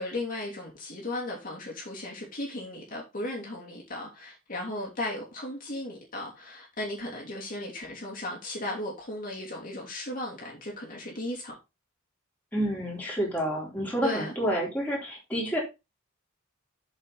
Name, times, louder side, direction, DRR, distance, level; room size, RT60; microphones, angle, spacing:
voice 1, 0.0-11.5 14.0-14.3, left 1 dB, 40° left, 3.0 m, -36 dB
voice 2, 12.5-15.6, equal, 10° left, 3.9 m, -29 dB
8.1 x 7.3 x 4.1 m
head